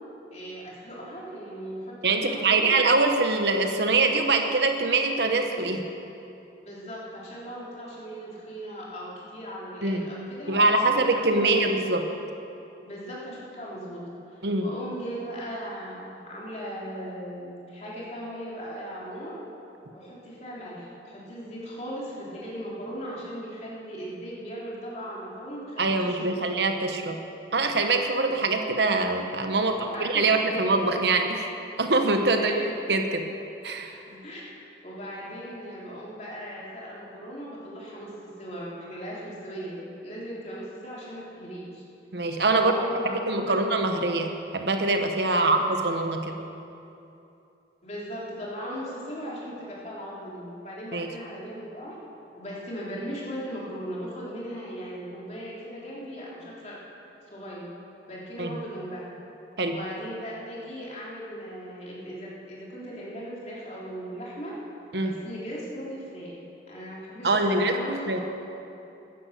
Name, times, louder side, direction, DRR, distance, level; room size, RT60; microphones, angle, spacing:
voice 1, 0.3-2.8 6.6-11.7 12.8-14.0 14.3-19.4 19.9-26.7 29.6-30.1 30.5-30.9 32.4-32.7 34.1-34.4 34.8-38.1 38.4-41.8 42.5-43.6 45.3-45.7 47.8-52.0 52.4-56.8 57.3-57.7 58.1-59.0 59.7-64.5 65.0-66.4 66.7-67.9, equal, 40° left, -5 dB, 3.3 m, -38 dB
voice 2, 2.0-5.8 9.8-10.1 10.5-12.0 14.4-14.7 25.8-27.2 27.5-31.5 31.8-33.2 33.6-34.0 42.1-42.7 43.3-46.4 50.9-51.1 58.4-58.5 59.6-59.8 64.9-65.1 67.2-68.2, right 3 dB, 70° right, 5 dB, 1.1 m, -24 dB
15.0 x 10.0 x 6.6 m, 2.8 s
head